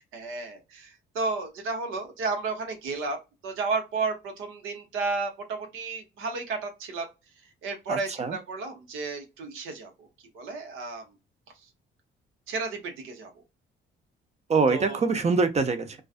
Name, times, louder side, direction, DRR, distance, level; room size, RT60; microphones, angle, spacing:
voice 1, 0.0-7.1 7.4-10.1 10.3-11.0 11.6-11.7 12.5-13.4 14.7-15.0, right 3 dB, 90° right, 0.9 m, -33 dB
voice 2, 7.9-8.4 14.5-16.0, right 4 dB, 35° right, 0.6 m, -24 dB
2.4 x 2.4 x 2.4 m
cardioid pair, 90°, 20 cm